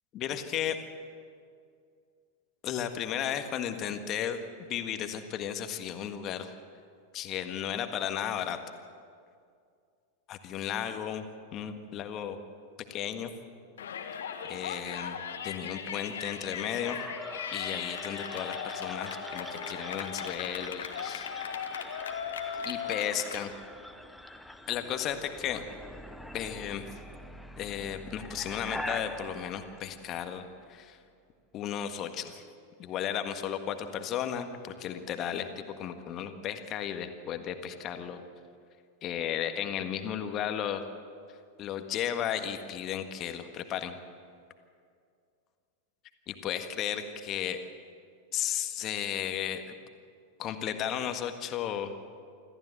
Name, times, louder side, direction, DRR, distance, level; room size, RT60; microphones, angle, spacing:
voice 1, 0.1-0.8 2.6-6.5 7.1-8.6 10.3-11.2 11.5-12.4 12.9-13.3 14.4-15.2 15.4-17.0 17.5-21.3 22.6-23.5 24.7-25.6 26.3-26.9 27.6-30.4 30.7-31.0 31.5-32.4 32.8-35.5 35.8-38.2 39.0-40.8 41.6-44.0 46.3-47.7 48.3-49.7 50.4-51.9, left 9 dB, 35° left, 7 dB, 1.6 m, -34 dB
Yell, 13.8-23.5, left 7 dB, 65° left, 1.6 m, -38 dB
sound 1, 16.8-30.7, equal, ahead, 1.1 m, -44 dB
25.5 x 15.0 x 7.9 m, 2.3 s
figure-of-eight pair, 90°, 0 cm